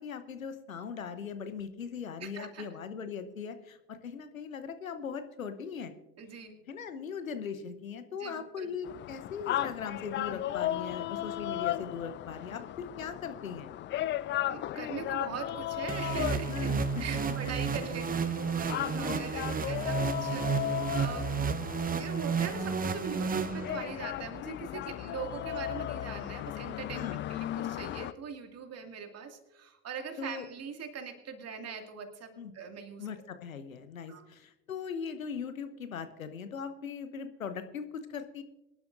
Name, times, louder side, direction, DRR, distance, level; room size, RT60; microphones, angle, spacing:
voice 1, 0.0-5.9 6.7-13.7 16.5-17.0 18.9-19.2 26.9-27.2 30.2-30.5 32.4-32.5 33.0-38.4, left 6 dB, 85° left, 10 dB, 1.0 m, -39 dB
voice 2, 2.2-2.7 6.2-6.6 8.2-8.7 14.5-16.7 17.0-21.3 22.0-33.1 34.1-34.3, right 6 dB, 40° right, 5 dB, 2.3 m, -41 dB
sound 1, 8.8-28.1, left 13 dB, 30° left, 0.4 m, -36 dB
sound 2, 15.9-24.1, right 6 dB, 20° right, 0.8 m, -32 dB
24.0 x 11.5 x 2.6 m, 0.96 s
figure-of-eight pair, 65°, 40 cm